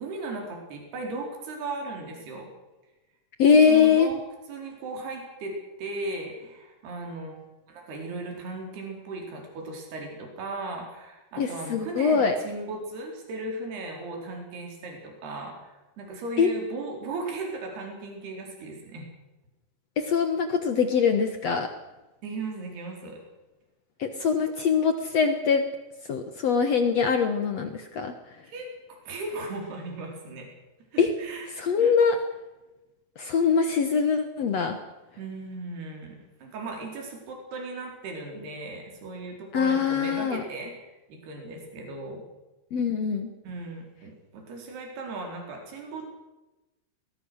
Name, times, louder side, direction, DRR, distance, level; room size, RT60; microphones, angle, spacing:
voice 1, 0.0-2.5 3.4-4.2 4.5-7.4 7.7-19.1 22.2-23.2 28.4-30.5 30.9-31.5 31.8-31.9 35.2-42.2 43.4-46.1, right 2 dB, 65° right, 1 dB, 6.2 m, -37 dB
voice 2, 3.4-4.1 11.4-12.3 16.4-16.5 20.0-21.7 24.0-25.6 26.1-28.1 31.0-31.1 31.6-32.2 33.2-34.8 39.5-40.4 42.7-43.3, left 6 dB, 70° left, 7 dB, 1.5 m, -23 dB
21.5 x 19.5 x 6.4 m, 1.1 s
omnidirectional pair, 5.1 m